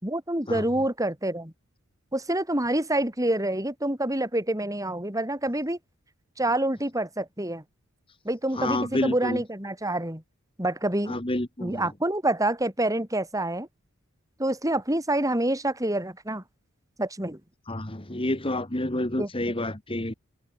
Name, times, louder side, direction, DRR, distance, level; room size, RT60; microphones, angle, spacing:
voice 1, 0.0-1.5 2.1-5.8 6.4-7.6 8.2-10.2 10.6-11.2 11.6-13.7 14.4-16.4 17.0-17.4 19.2-19.3, right 1 dB, 15° right, 6.1 m, -27 dB
voice 2, 8.5-9.4 11.1-11.8 17.7-20.1, left 1 dB, 25° left, 1.9 m, -29 dB
head